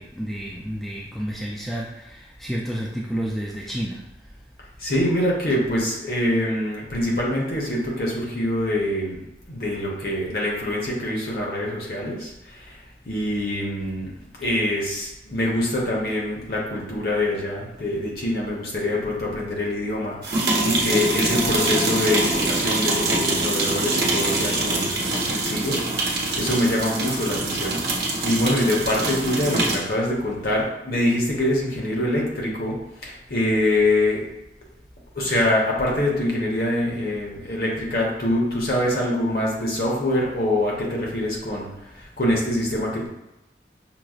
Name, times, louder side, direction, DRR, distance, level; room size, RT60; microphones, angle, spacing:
voice 1, 0.0-4.0, equal, ahead, -4 dB, 0.3 m, -30 dB
voice 2, 4.8-9.2 9.5-12.8 13.1-34.2 35.1-43.1, left 1 dB, 60° left, -3 dB, 0.9 m, -25 dB
sound 1, 20.2-29.9, right 2 dB, 60° right, 0.8 m, -24 dB
5.8 x 2.0 x 2.4 m, 0.92 s
head